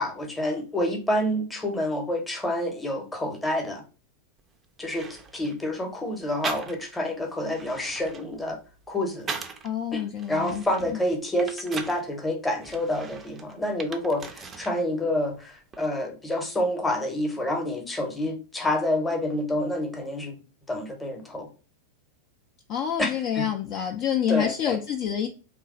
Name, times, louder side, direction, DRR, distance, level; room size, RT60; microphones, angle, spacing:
voice 1, 0.0-3.8 4.8-8.6 8.9-9.3 9.9-20.4 20.7-21.5 23.0-23.5 23.8-23.9 24.3-24.8, left 1 dB, 10° left, 0.8 m, -28 dB
sound 1, 4.4-4.5 4.8-5.6 6.4-7.1 7.4-9.7 10.2-12.0 12.6-14.8 15.1-15.9, right 5 dB, 20° right, 0.4 m, -39 dB
voice 2, 9.6-10.6 22.7-25.3, left 9 dB, 40° left, 0.4 m, -27 dB
3.1 x 2.3 x 3.7 m
figure-of-eight pair, 90°, 0 cm